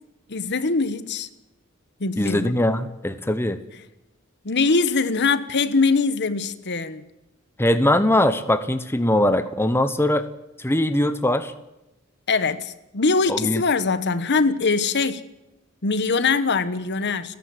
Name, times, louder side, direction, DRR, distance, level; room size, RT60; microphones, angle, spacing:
voice 1, 0.3-1.3 2.0-2.5 4.4-7.0 12.3-15.2 15.8-17.4, left 4 dB, 55° left, 1.2 m, -22 dB
voice 2, 2.2-3.6 7.6-10.3 10.6-11.5 13.3-13.6, left 1 dB, 10° left, 1.0 m, -21 dB
29.5 x 11.0 x 7.9 m
head